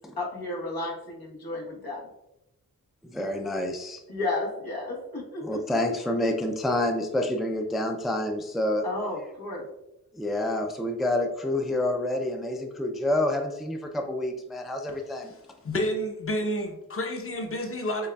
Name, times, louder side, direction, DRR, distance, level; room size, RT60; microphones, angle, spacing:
voice 1, 0.1-2.0 4.1-5.6 8.8-9.7, left 2 dB, 80° left, -3 dB, 1.3 m, -32 dB
voice 2, 3.0-4.0 5.4-8.8 10.1-15.3, left 1 dB, ahead, 4 dB, 0.4 m, -28 dB
voice 3, 15.6-18.1, equal, 35° left, 3 dB, 0.8 m, -30 dB
6.4 x 2.5 x 2.3 m, 0.89 s
cardioid pair, 45°, 36 cm